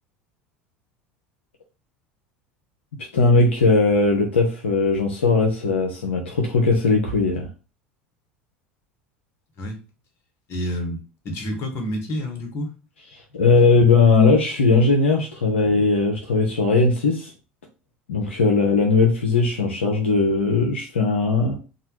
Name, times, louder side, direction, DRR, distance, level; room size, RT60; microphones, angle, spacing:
voice 1, 3.0-7.5 13.3-17.3 18.1-21.6, left 3 dB, 85° left, 1 dB, 0.5 m, -19 dB
voice 2, 10.5-12.7, equal, 50° left, 3 dB, 1.1 m, -29 dB
2.9 x 2.3 x 2.9 m, 0.33 s
hypercardioid pair, 75°, 6 cm